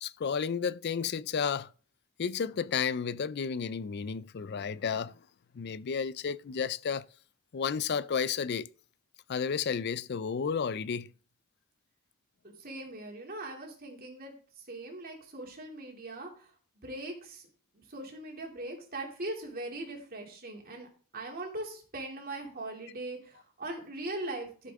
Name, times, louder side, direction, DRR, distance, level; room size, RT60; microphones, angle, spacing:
voice 1, 0.0-1.7 2.2-5.1 5.5-7.0 7.5-8.7 9.3-11.1, left 6 dB, 50° left, 0.4 m, -32 dB
voice 2, 12.4-17.5 17.7-24.7, right 2 dB, 40° right, 2.7 m, -41 dB
13.0 x 7.5 x 3.6 m
head